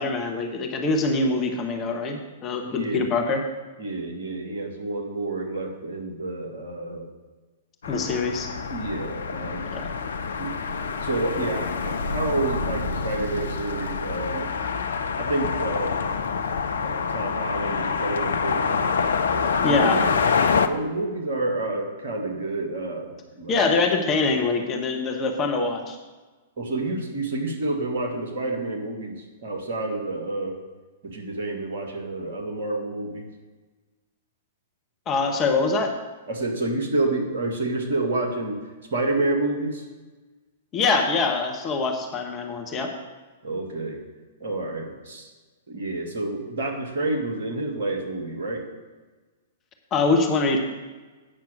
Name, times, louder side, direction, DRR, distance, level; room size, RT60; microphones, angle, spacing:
voice 1, 0.0-3.4 7.9-8.5 9.7-9.9 19.6-20.0 23.5-26.0 35.1-35.9 40.7-42.9 49.9-50.6, left 3 dB, 25° left, 3 dB, 1.0 m, -24 dB
voice 2, 2.6-3.1 3.8-7.0 8.7-9.7 9.9-10.1 10.4-10.5 10.9-14.5 15.2-16.1 16.8-18.9 19.3-20.1 20.7-23.6 26.6-30.6 31.0-33.3 36.3-39.9 43.4-44.0 44.4-45.3 45.7-48.6, right 2 dB, 55° right, 1 dB, 1.8 m, -29 dB
sound 1, 7.8-20.7, left 5 dB, 65° left, 0.5 m, -26 dB
8.7 x 5.9 x 6.5 m, 1.3 s
figure-of-eight pair, 105°, 0 cm